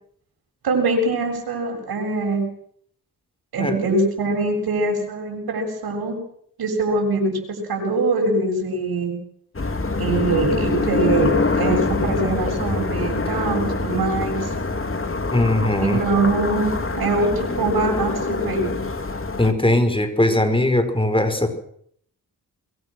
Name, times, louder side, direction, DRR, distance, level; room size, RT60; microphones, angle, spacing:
voice 1, 0.6-2.4 3.5-6.2 6.6-9.1 10.0-11.3 11.5-14.5 15.8-18.7, right 2 dB, 90° right, 2 dB, 7.5 m, -23 dB
sound 1, 9.5-19.5, left 3 dB, 35° left, 3.2 m, -24 dB
voice 2, 15.3-16.0 19.4-21.5, left 1 dB, 15° left, 8 dB, 5.0 m, -19 dB
23.5 x 23.5 x 6.3 m, 0.65 s
cardioid pair, 60°, 36 cm